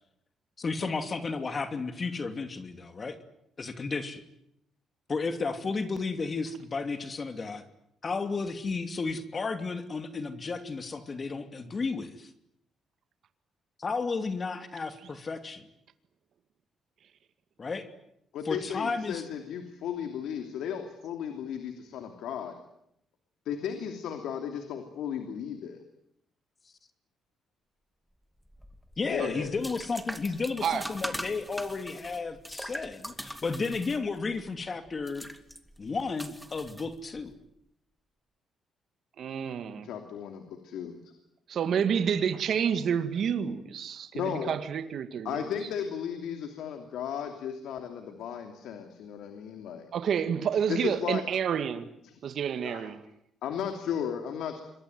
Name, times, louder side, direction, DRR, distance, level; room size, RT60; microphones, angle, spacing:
voice 1, 0.6-3.2 3.6-4.2 5.1-7.6 8.0-12.3 13.8-15.7 17.6-17.9 18.5-19.2 29.0-35.3 35.8-37.3, left 4 dB, 35° left, 2.7 m, -33 dB
voice 2, 18.3-22.5 23.4-25.8 29.1-29.6 39.8-41.1 44.1-44.6 45.2-49.9 50.7-51.2 52.0-52.1 52.6-52.9 53.4-54.6, left 8 dB, 80° left, 2.9 m, -35 dB
sound 1, 28.5-37.3, equal, ahead, 2.3 m, -42 dB
voice 3, 39.2-39.9 41.5-45.3 49.9-51.9 52.2-53.0, right 7 dB, 65° right, 2.0 m, -29 dB
26.5 x 22.0 x 9.4 m
cardioid pair, 90°, 0 cm